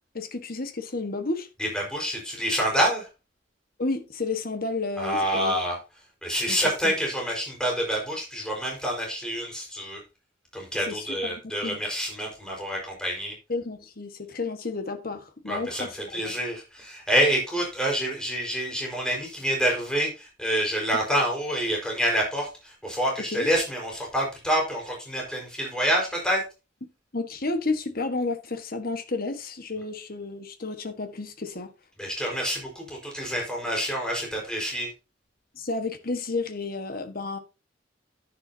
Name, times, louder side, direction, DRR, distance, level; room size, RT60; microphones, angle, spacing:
voice 1, 0.1-1.5 3.8-5.5 6.5-6.9 10.9-11.8 13.5-16.3 23.3-23.5 27.1-31.7 35.5-37.4, left 3 dB, 50° left, 1.5 m, -31 dB
voice 2, 1.6-3.1 5.0-5.8 6.2-10.0 10.5-13.3 15.5-26.4 32.0-34.9, equal, 5° left, 4.8 m, -27 dB
10.5 x 10.0 x 2.8 m
head